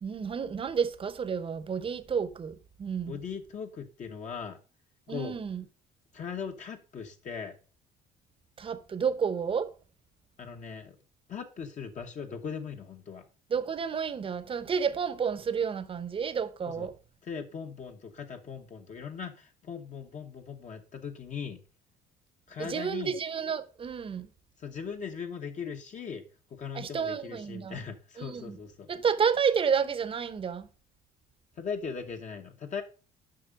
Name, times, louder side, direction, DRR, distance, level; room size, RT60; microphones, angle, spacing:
voice 1, 0.0-3.2 5.1-5.6 8.6-9.7 13.5-16.9 22.6-24.3 26.7-27.8 28.2-28.6 28.9-30.7, right 6 dB, 30° right, 0.8 m, -30 dB
voice 2, 3.0-4.6 5.1-5.4 6.1-7.5 10.4-11.0 11.3-13.2 16.7-16.9 17.2-21.6 22.5-23.2 24.6-26.2 26.5-28.9 31.6-32.8, left 6 dB, 45° left, 1.1 m, -39 dB
7.7 x 5.6 x 5.1 m
cardioid pair, 110°, 17 cm